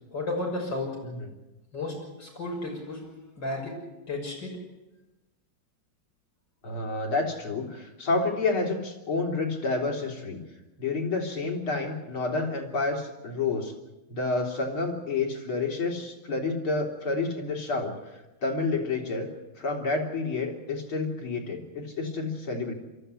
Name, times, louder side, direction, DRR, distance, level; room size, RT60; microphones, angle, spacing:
voice 1, 0.1-0.9 1.7-3.0 3.4-3.7 4.1-4.5, left 2 dB, 60° left, -1 dB, 7.1 m, -32 dB
voice 2, 6.6-10.4 10.8-13.7 14.1-18.0 18.4-19.3 19.6-22.7, left 3 dB, 90° left, 1 dB, 4.0 m, -29 dB
23.5 x 14.0 x 9.7 m, 1.0 s
omnidirectional pair, 2.3 m